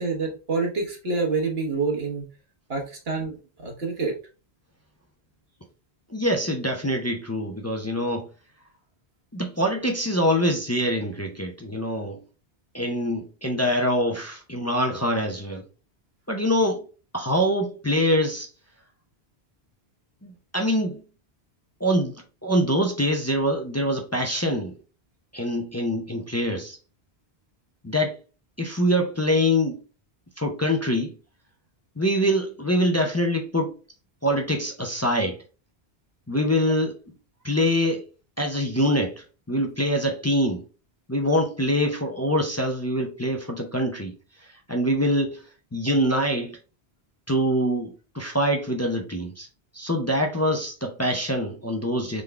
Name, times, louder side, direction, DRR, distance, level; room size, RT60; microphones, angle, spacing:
voice 1, 0.0-2.3 2.7-4.1, right 4 dB, 65° right, 1.5 m, -27 dB
voice 2, 6.1-8.3 9.3-12.2 12.7-15.6 16.3-16.9 17.1-18.5 20.2-21.0 21.8-24.7 25.3-26.8 27.8-28.2 28.6-29.8 30.4-31.1 32.0-33.7 34.2-35.4 36.3-37.0 37.4-38.0 38.4-40.6 41.1-44.1 44.4-46.6 47.3-49.5 49.7-52.2, equal, 20° left, 0.5 m, -24 dB
3.9 x 3.5 x 3.3 m
omnidirectional pair, 1.1 m